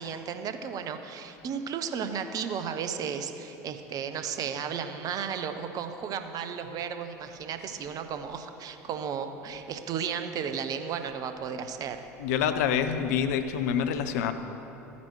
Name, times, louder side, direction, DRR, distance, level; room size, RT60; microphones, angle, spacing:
voice 1, 0.0-12.0, right 7 dB, 40° right, 8 dB, 0.7 m, -34 dB
voice 2, 12.2-14.3, left 8 dB, 65° left, 10 dB, 0.6 m, -26 dB
13.5 x 9.4 x 3.1 m, 3.0 s
figure-of-eight pair, 70°, 9 cm